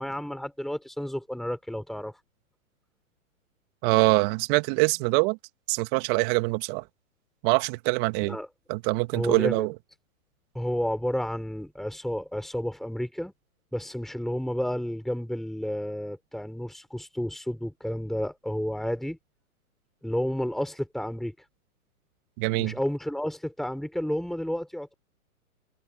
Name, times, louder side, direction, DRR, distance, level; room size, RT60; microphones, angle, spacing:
voice 1, 0.0-2.2 8.3-8.5 9.1-9.7 10.5-13.3 13.7-19.2 20.0-21.3 22.6-24.9, equal, ahead, 4.1 m, -31 dB
voice 2, 3.8-5.4 5.7-6.8 7.4-8.4 8.7-9.7 22.4-22.8, right 27 dB, 35° right, 2.6 m, -24 dB
hypercardioid pair, 130°, 43 cm